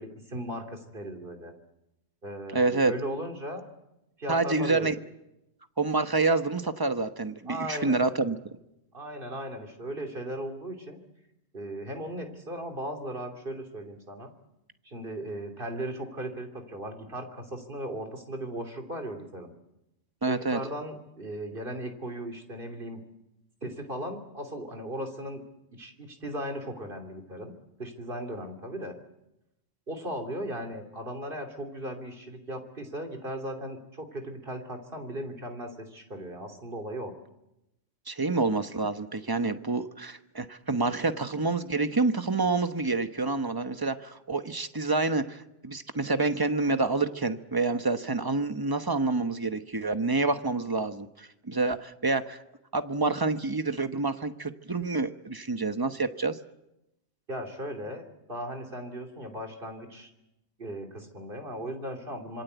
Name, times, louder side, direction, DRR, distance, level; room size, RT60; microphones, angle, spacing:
voice 1, 0.0-1.5 2.2-3.6 4.2-4.9 7.5-8.1 8.9-11.0 11.5-14.3 14.8-19.5 20.3-23.0 23.6-25.4 25.7-27.5 27.8-28.9 29.9-37.1 57.3-60.1 60.6-62.4, right 1 dB, 45° right, 4 dB, 3.2 m, -37 dB
voice 2, 2.5-2.9 4.3-4.9 5.8-8.4 20.2-20.6 38.1-52.4 52.7-56.4, right 3 dB, 20° right, 9 dB, 1.0 m, -28 dB
26.0 x 22.5 x 8.2 m, 0.91 s
omnidirectional pair, 1.3 m